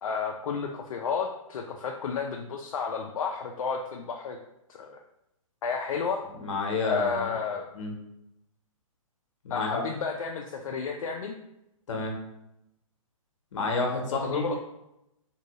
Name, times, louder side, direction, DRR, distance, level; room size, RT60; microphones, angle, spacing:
voice 1, 0.0-4.4 4.7-5.0 5.6-6.3 6.8-7.7 9.5-11.3 14.2-14.6, left 5 dB, 80° left, 1 dB, 0.4 m, -31 dB
voice 2, 6.4-7.3 7.7-7.9 9.4-9.8 11.9-12.1 13.5-14.6, left 3 dB, 60° left, 1 dB, 0.9 m, -30 dB
2.7 x 2.6 x 3.0 m, 0.85 s
hypercardioid pair, 155°, 18 cm